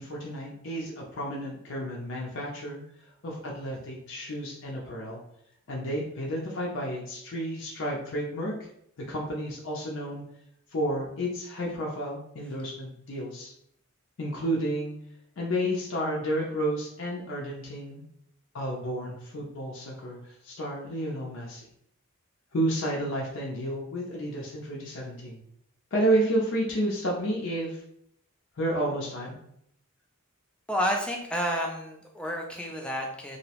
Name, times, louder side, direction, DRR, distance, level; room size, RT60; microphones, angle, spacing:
voice 1, 0.0-2.8 3.2-5.2 5.7-8.6 9.1-10.2 10.7-13.5 14.2-15.0 15.4-18.1 18.5-21.6 22.5-25.4 25.9-27.8 28.6-29.4, right 1 dB, 60° left, -3 dB, 0.5 m, -31 dB
voice 2, 30.7-33.4, equal, 5° left, 0 dB, 0.3 m, -30 dB
2.7 x 2.0 x 2.8 m, 0.72 s
head